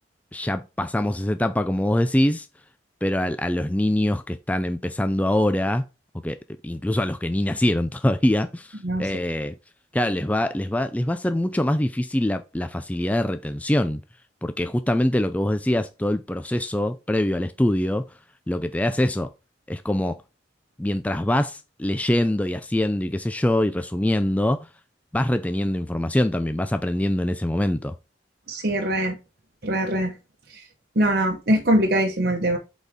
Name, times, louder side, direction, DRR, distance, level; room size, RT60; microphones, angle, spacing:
voice 1, 0.3-2.5 3.0-5.8 6.2-6.4 6.6-9.6 9.9-14.0 14.4-18.0 18.5-19.3 19.7-20.2 20.8-24.7 25.1-27.9, left 1 dB, 10° left, 0.3 m, -24 dB
voice 2, 28.5-29.2 29.6-30.1 30.5-30.6 31.0-32.6, right 1 dB, 50° right, 1.0 m, -22 dB
8.1 x 4.2 x 3.6 m
head